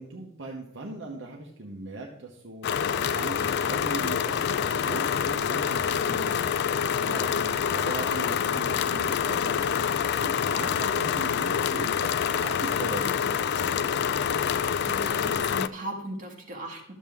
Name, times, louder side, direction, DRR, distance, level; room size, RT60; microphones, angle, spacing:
voice 1, 0.0-6.4 6.9-9.6 10.2-13.4 13.6-14.1, right 2 dB, 65° right, 0 dB, 1.0 m, -39 dB
sound 1, 2.6-15.7, left 7 dB, 55° left, 0.3 m, -26 dB
voice 2, 14.8-16.9, right 1 dB, 40° right, 0 dB, 1.7 m, -37 dB
12.0 x 7.3 x 3.6 m, 0.84 s
head